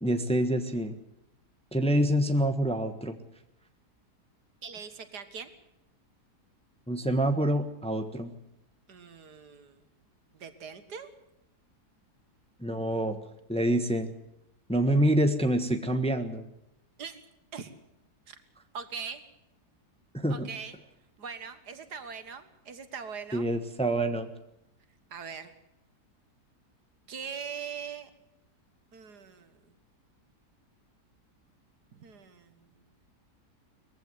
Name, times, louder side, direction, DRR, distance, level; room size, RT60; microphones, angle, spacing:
voice 1, 0.0-0.9 1.7-3.2 6.9-8.3 12.6-13.2 13.5-14.1 14.7-16.4 20.1-20.5 23.3-24.3, right 1 dB, 5° left, 7 dB, 1.2 m, -26 dB
voice 2, 4.6-5.5 8.9-9.9 10.3-11.1 17.0-17.2 17.5-17.7 18.3-18.4 18.7-19.2 20.3-20.8 21.2-23.5 25.1-25.5 27.1-28.1 28.9-29.7 31.9-32.7, right 6 dB, 70° right, 10 dB, 2.1 m, -41 dB
20.5 x 15.0 x 9.6 m, 0.82 s
omnidirectional pair, 1.8 m